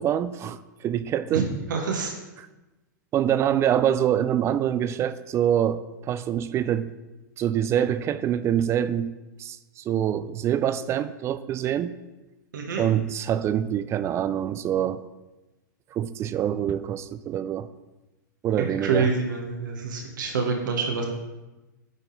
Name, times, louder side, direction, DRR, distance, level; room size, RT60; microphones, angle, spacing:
voice 1, 0.0-1.5 2.4-2.5 3.1-6.9 7.4-9.1 9.4-12.0 12.8-15.0 15.9-17.7 18.4-19.1, right 10 dB, 25° right, 14 dB, 0.3 m, -25 dB
voice 2, 1.7-2.1 12.5-12.8 18.6-21.0, right 5 dB, 80° right, 1 dB, 1.2 m, -27 dB
8.9 x 4.0 x 4.0 m, 1.1 s
hypercardioid pair, 115°, 10 cm